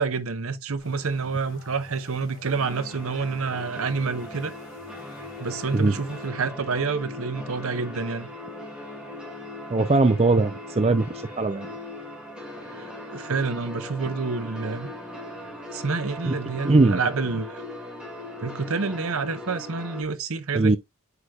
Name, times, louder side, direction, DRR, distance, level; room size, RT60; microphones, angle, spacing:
voice 1, 0.0-4.5 5.4-8.3 12.7-14.9 15.7-17.6 18.4-20.8, right 4 dB, 75° right, 0.8 m, -28 dB
sound 1, 0.8-6.3, left 2 dB, 70° left, 2.6 m, -50 dB
sound 2, 2.5-20.0, left 1 dB, 5° right, 2.0 m, -39 dB
voice 2, 9.7-11.1 11.4-11.7 16.2-16.4 16.6-17.0 20.5-20.8, right 3 dB, 30° right, 0.4 m, -20 dB
8.1 x 5.0 x 2.3 m
head